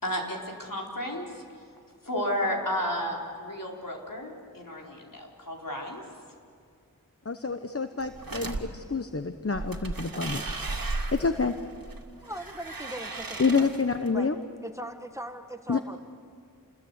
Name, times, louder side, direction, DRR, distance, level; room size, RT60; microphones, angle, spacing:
voice 1, 0.0-1.6 2.0-6.0, equal, 70° left, -1 dB, 4.4 m, -32 dB
voice 2, 7.2-10.4 11.1-11.5 13.4-14.3 15.7-15.8, left 4 dB, 40° left, 8 dB, 1.0 m, -27 dB
sound 1, 8.0-8.6 9.5-14.1, right 3 dB, 80° right, 2.2 m, -35 dB
voice 3, 12.2-13.7 14.1-14.3 14.6-16.0, equal, 10° right, 6 dB, 1.5 m, -39 dB
28.5 x 21.5 x 8.2 m, 2.2 s
wide cardioid pair, 55°, 34 cm